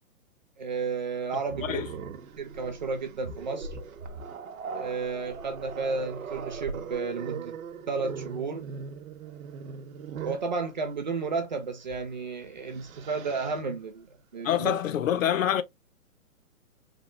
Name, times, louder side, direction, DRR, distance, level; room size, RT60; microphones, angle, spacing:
voice 1, 0.6-1.9 2.4-3.8 4.7-7.6 7.9-8.7 10.2-14.1 14.3-14.7, right 4 dB, 30° right, 0.5 m, -32 dB
Growling, 1.5-10.5 11.9-12.1 12.5-13.6, right 5 dB, 60° right, 0.8 m, -40 dB
voice 2, 14.4-15.6, left 10 dB, 60° left, 0.5 m, -26 dB
3.4 x 2.3 x 2.5 m
hypercardioid pair, 155°, 46 cm